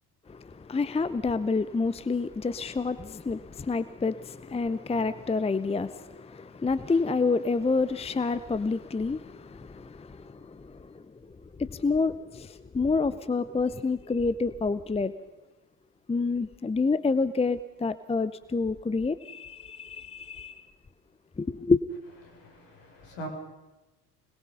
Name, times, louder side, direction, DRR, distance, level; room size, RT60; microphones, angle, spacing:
voice 1, 0.3-11.0 11.6-15.1 16.1-20.6 21.4-21.8, left 4 dB, 10° left, 0.8 m, -28 dB
voice 2, 22.3-23.3, right 1 dB, 60° left, 6.8 m, -42 dB
26.0 x 21.0 x 5.7 m
figure-of-eight pair, 55°, 48 cm